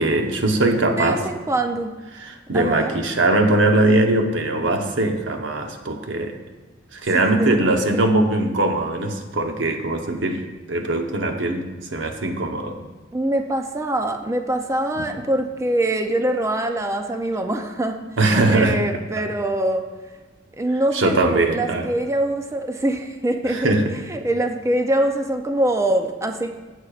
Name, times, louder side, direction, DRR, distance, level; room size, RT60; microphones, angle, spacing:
voice 1, 0.0-1.2 2.1-6.3 6.9-11.6 11.9-12.8 15.0-15.1 18.2-18.8 20.9-21.9 23.4-23.9, right 2 dB, 80° right, 4 dB, 0.9 m, -21 dB
voice 2, 1.0-1.9 2.5-3.0 7.1-7.6 7.9-8.1 13.1-18.0 18.3-19.8 20.6-23.8 24.1-26.5, right 1 dB, 15° right, 5 dB, 0.5 m, -23 dB
15.0 x 6.5 x 2.4 m, 1.3 s
head